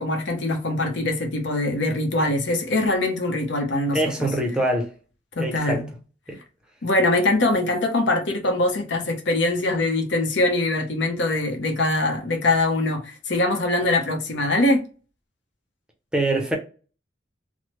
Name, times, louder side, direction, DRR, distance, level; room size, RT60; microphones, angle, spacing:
voice 1, 0.0-4.3 5.4-5.9 6.8-14.8, left 2 dB, 70° left, 0.7 m, -23 dB
voice 2, 3.9-4.9 5.4-5.8 6.3-6.4 16.1-16.6, right 1 dB, 5° right, 0.6 m, -24 dB
3.1 x 2.0 x 3.0 m
head